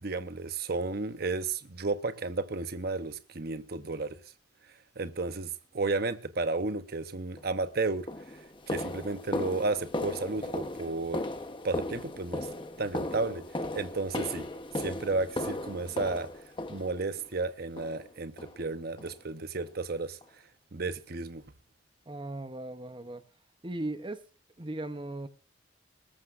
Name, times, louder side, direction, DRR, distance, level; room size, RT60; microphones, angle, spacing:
voice 1, 0.0-4.2 5.0-8.1 8.7-11.2 11.6-12.5 12.8-13.4 13.7-14.5 14.8-16.3 16.7-20.2 20.7-21.4, right 3 dB, 55° right, 0.8 m, -33 dB
sound 1, 7.4-7.5 8.1-17.3 17.8-18.1 18.4-18.6 19.0-19.2 19.6-19.7 20.2-20.3, left 1 dB, 25° left, 0.9 m, -37 dB
voice 2, 22.1-23.2 23.6-24.3 24.6-25.3, right 2 dB, 25° right, 0.8 m, -37 dB
20.0 x 14.0 x 2.5 m
head